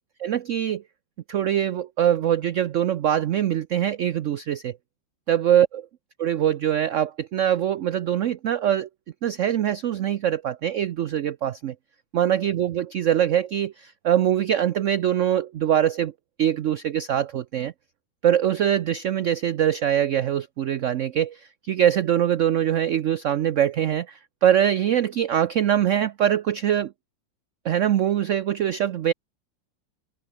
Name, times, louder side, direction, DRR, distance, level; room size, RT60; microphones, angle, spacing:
voice 1, 0.2-0.8 1.3-4.8 5.3-5.9 6.2-8.9 9.2-11.7 12.1-16.1 16.4-17.7 18.2-26.9 27.6-29.1, right 10 dB, 80° right, 0.6 m, -23 dB
omnidirectional pair, 2.1 m